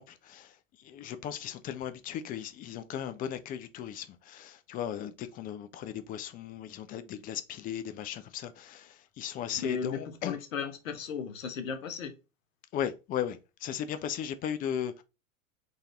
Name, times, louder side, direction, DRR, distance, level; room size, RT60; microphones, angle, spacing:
voice 1, 0.0-10.4 12.7-15.0, left 9 dB, 20° left, 0.4 m, -37 dB
voice 2, 9.6-12.1, left 6 dB, 75° left, 1.0 m, -36 dB
4.0 x 2.6 x 3.6 m
hypercardioid pair, 95°, 40 cm